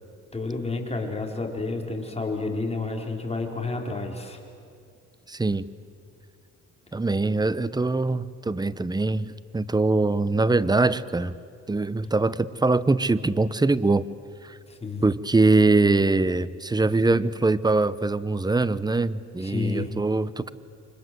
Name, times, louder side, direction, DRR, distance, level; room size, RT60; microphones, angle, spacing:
voice 1, 0.3-4.4 14.7-15.0 19.4-19.9, left 3 dB, 20° left, 2 dB, 4.7 m, -30 dB
voice 2, 5.3-5.6 6.9-11.4 11.7-14.0 14.4-14.6 15.0-20.5, right 3 dB, 15° right, 16 dB, 1.0 m, -23 dB
29.0 x 25.0 x 7.9 m, 2.4 s
cardioid pair, 90°, 30 cm